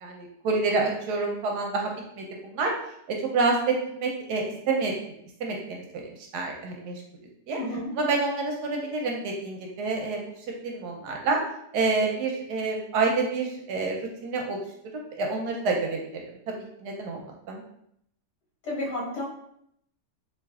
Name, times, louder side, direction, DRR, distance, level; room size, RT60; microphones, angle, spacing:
voice 1, 0.0-2.7 3.1-4.9 5.4-7.0 7.5-7.6 8.0-11.4 11.7-14.0 14.2-14.6 15.1-16.2 16.8-17.2 17.5-17.6, right 3 dB, 75° right, 1 dB, 1.1 m, -28 dB
voice 2, 7.6-7.9 18.6-19.2, left 1 dB, 70° left, -5 dB, 1.8 m, -31 dB
4.0 x 2.9 x 2.3 m, 0.72 s
omnidirectional pair, 1.9 m